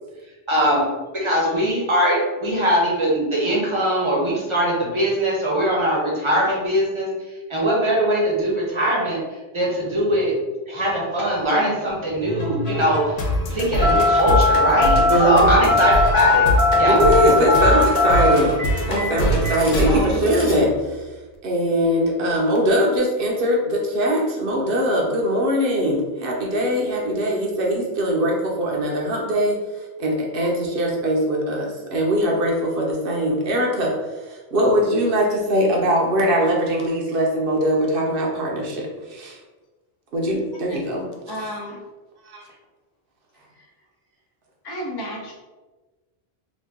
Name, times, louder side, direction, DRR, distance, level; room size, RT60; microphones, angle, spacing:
voice 1, 0.5-0.9 1.1-7.1 7.5-9.2 9.5-10.3 10.7-17.0, equal, 30° right, -4 dB, 0.8 m, -21 dB
sound 1, 12.4-21.0, equal, 75° left, 0.8 m, -24 dB
Telephone, 13.8-20.7, left 2 dB, 15° left, 0.8 m, -19 dB
voice 2, 15.1-15.7 16.8-21.0 21.4-29.6 30.0-34.0 34.3-39.4 40.1-41.6 42.3-42.4, equal, 60° right, -1 dB, 0.9 m, -21 dB
voice 3, 41.3-41.8 44.6-45.3, equal, 35° left, -2 dB, 0.4 m, -32 dB
3.0 x 2.3 x 3.5 m, 1.2 s
omnidirectional pair, 1.1 m